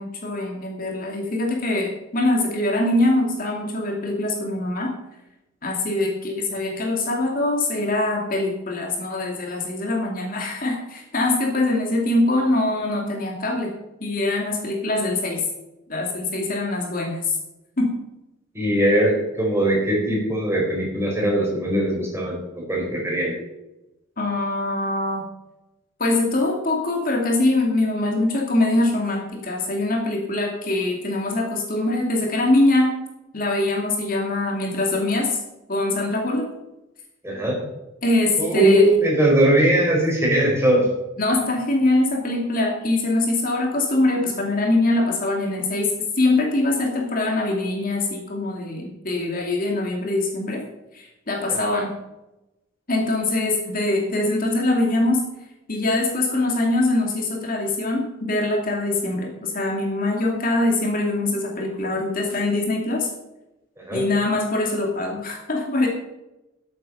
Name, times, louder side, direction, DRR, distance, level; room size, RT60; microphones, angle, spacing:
voice 1, 0.0-4.9 5.6-13.7 14.0-15.4 15.9-17.3 17.8-17.9 24.2-25.2 26.0-32.9 33.3-35.4 35.7-36.4 38.0-38.9 41.2-45.9 46.2-50.6 50.9-51.9 52.9-55.2 55.7-63.1 63.9-65.9, left 2 dB, 45° left, 0 dB, 2.5 m, -23 dB
voice 2, 18.5-23.3 37.2-37.6 38.4-40.9 51.5-51.6 63.8-64.0, right 1 dB, 15° right, -2 dB, 4.6 m, -20 dB
13.5 x 8.3 x 5.6 m, 0.97 s
head